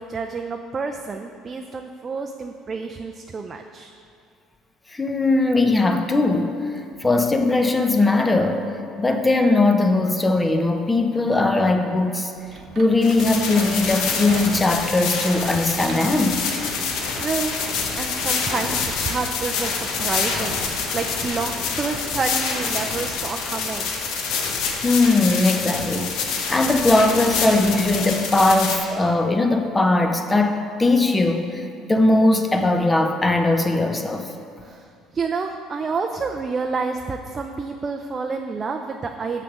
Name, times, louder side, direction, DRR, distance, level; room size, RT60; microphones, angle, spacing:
voice 1, 0.0-3.9 17.2-17.6 17.9-21.5 21.8-23.9 34.6-39.4, right 4 dB, 35° right, 3 dB, 0.5 m, -29 dB
voice 2, 4.9-6.7 7.0-8.6 9.0-12.3 12.8-16.4 24.8-34.3, left 2 dB, 20° left, 5 dB, 0.9 m, -19 dB
sound 1, 12.4-17.1, right 4 dB, 55° right, 0.9 m, -39 dB
sound 2, 13.0-28.8, left 5 dB, 70° left, 1.0 m, -26 dB
6.8 x 6.1 x 5.9 m, 2.3 s
hypercardioid pair, 65°, 0 cm